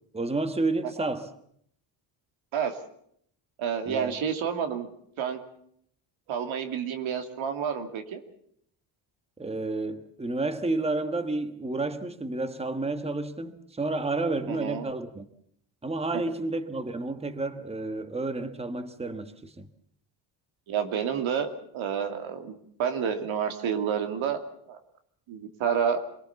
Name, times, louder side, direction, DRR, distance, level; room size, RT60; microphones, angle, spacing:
voice 1, 0.1-1.3 3.9-4.1 9.4-15.2 15.8-19.7, right 2 dB, 15° right, 1.5 m, -30 dB
voice 2, 3.6-4.9 5.2-5.4 6.3-8.2 14.5-14.9 20.7-24.4 24.7-24.8 25.3-26.0, right 7 dB, 80° right, 2.7 m, -29 dB
25.5 x 18.5 x 7.1 m
cardioid pair, 120°, 47 cm